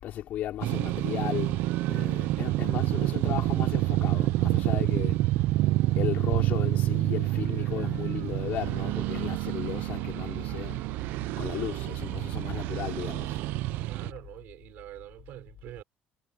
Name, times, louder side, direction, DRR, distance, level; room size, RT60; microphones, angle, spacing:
voice 1, 0.0-5.5 6.0-10.8 11.4-13.4 14.1-14.2, left 12 dB, 55° left, 3.9 m, -35 dB
sound 1, 0.6-14.1, right 17 dB, 85° right, 0.8 m, -28 dB
voice 2, 13.9-15.8, right 14 dB, 65° right, 5.8 m, -45 dB
cardioid pair, 175°, 3 cm